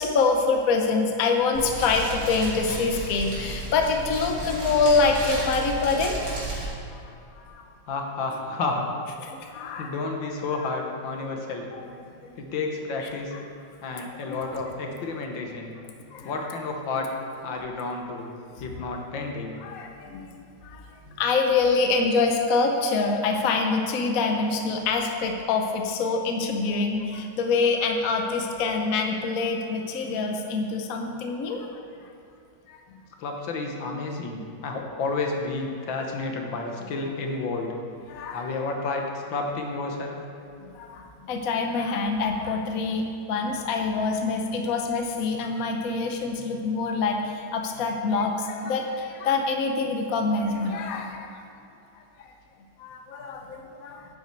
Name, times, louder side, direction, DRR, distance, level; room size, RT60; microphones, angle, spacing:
voice 1, 0.0-6.2 6.9-7.0 7.3-7.6 9.2-9.9 11.7-11.8 12.2-12.3 14.2-14.5 16.1-16.3 19.6-20.4 20.6-20.8 21.1-31.8 32.7-32.8 38.1-38.6 40.6-51.4 52.2-52.3 52.8-54.0, left 4 dB, 55° left, 3 dB, 1.1 m, -25 dB
Fire, 1.5-6.7, right 2 dB, 75° right, 3.6 m, -33 dB
voice 2, 7.9-8.9 9.8-11.7 12.4-13.3 13.8-15.7 16.2-17.1 17.4-18.3 18.6-19.6 33.2-37.7 38.1-40.2, left 3 dB, 75° left, 2 dB, 1.8 m, -31 dB
10.0 x 8.4 x 4.6 m, 2.6 s
omnidirectional pair, 2.1 m